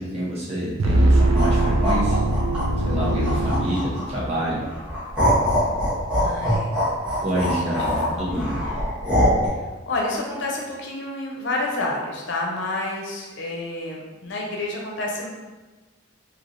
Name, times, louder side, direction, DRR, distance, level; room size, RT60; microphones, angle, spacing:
voice 1, 0.0-2.2 2.8-4.7 7.2-8.6, equal, 30° right, -6 dB, 0.8 m, -27 dB
sound 1, 0.8-4.3, right 1 dB, 80° right, 0.4 m, -21 dB
sound 2, 1.2-4.2 4.7-9.5, equal, 5° right, 1.0 m, -23 dB
voice 2, 6.2-6.9 7.4-7.6 8.1-8.6 9.9-15.3, left 2 dB, 65° left, -1 dB, 0.6 m, -29 dB
3.2 x 2.8 x 2.6 m, 1.2 s
head